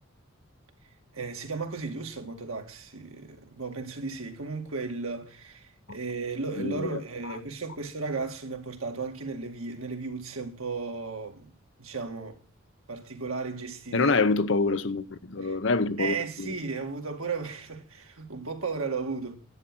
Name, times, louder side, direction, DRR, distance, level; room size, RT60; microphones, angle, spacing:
voice 1, 1.1-11.5 11.8-12.4 12.9-14.2 15.4-15.6 16.0-19.3, right 4 dB, 85° right, 2.2 m, -35 dB
voice 2, 6.6-7.0 13.9-16.5, left 3 dB, 60° left, 0.8 m, -26 dB
11.0 x 8.7 x 6.1 m
head